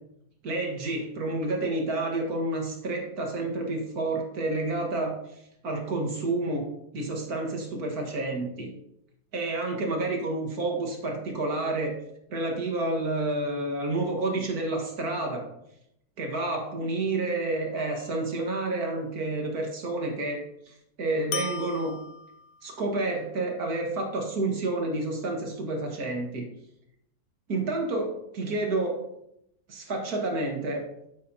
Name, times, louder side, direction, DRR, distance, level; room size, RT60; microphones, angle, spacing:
voice 1, 0.4-5.2 5.6-6.7 6.9-8.7 9.3-12.0 12.3-15.4 16.2-22.0 22.6-26.5 27.5-29.0 29.7-30.8, right 2 dB, 75° right, 1 dB, 2.2 m, -29 dB
sound 1, 17.8-18.4 21.3-22.7, left 5 dB, 65° left, 1.0 m, -38 dB
10.0 x 7.6 x 2.8 m, 0.78 s
omnidirectional pair, 1.6 m